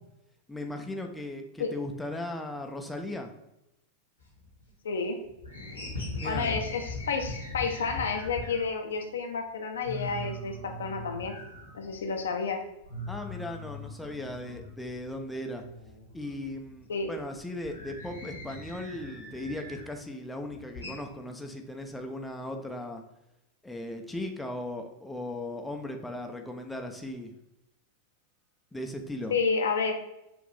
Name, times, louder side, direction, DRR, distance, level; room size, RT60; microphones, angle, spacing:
voice 1, 0.5-3.3 6.2-6.5 13.1-15.6 16.1-23.0 23.6-27.3 28.7-29.3, left 1 dB, 5° left, 3 dB, 0.5 m, -37 dB
sound 1, 4.2-4.9 5.2-8.7 9.1-9.2 9.5-9.6 9.8-12.3 12.6-15.2 15.5-19.9 20.3-21.0, left 2 dB, 85° left, 1.2 m, -40 dB
voice 2, 4.8-5.2 6.2-11.3 11.7-12.6 16.9-17.1 29.3-29.9, left 5 dB, 65° left, 4 dB, 0.6 m, -30 dB
5.8 x 2.5 x 3.2 m, 0.88 s
figure-of-eight pair, 90°, 0 cm